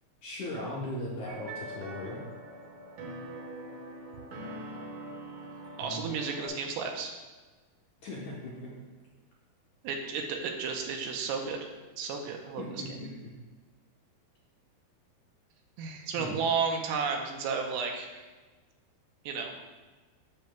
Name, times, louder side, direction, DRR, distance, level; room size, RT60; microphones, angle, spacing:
voice 1, 0.2-2.2 5.8-6.0 8.0-8.7 12.6-13.1 16.2-16.4, left 1 dB, 70° left, -5 dB, 1.9 m, -38 dB
sound 1, 1.3-6.5, right 1 dB, 60° right, 2.1 m, -43 dB
voice 2, 5.8-7.1 9.8-11.6 12.0-12.8 15.8-18.2 19.3-19.5, right 5 dB, 80° right, 2 dB, 2.6 m, -32 dB
10.5 x 7.5 x 2.3 m, 1.3 s
omnidirectional pair, 4.6 m